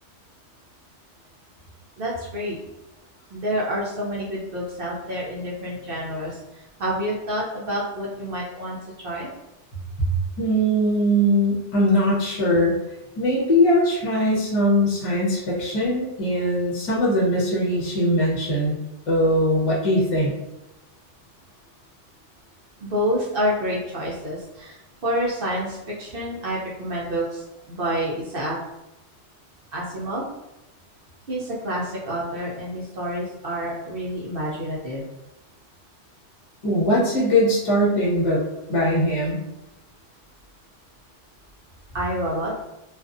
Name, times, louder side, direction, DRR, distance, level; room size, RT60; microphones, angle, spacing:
voice 1, 2.0-2.6 3.3-9.3 22.8-28.6 29.7-30.2 31.3-35.0 41.9-42.5, equal, 60° right, -5 dB, 0.7 m, -28 dB
voice 2, 10.4-12.7 13.2-18.8 19.1-20.3 36.6-38.4 38.7-39.4, equal, 35° left, -6 dB, 0.7 m, -21 dB
2.5 x 2.3 x 2.5 m, 0.94 s
omnidirectional pair, 1.2 m